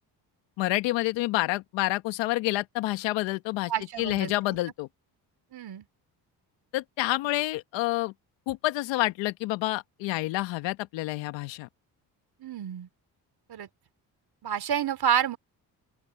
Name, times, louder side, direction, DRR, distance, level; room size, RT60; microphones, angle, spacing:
voice 1, 0.6-3.7 4.0-4.9 6.7-8.1 8.5-11.7, left 18 dB, 85° left, 1.6 m, -28 dB
voice 2, 3.7-4.3 5.5-5.8 12.4-12.9 13.5-13.7 14.4-15.4, right 9 dB, 60° right, 2.7 m, -29 dB
open air
supercardioid pair, 65°, 44 cm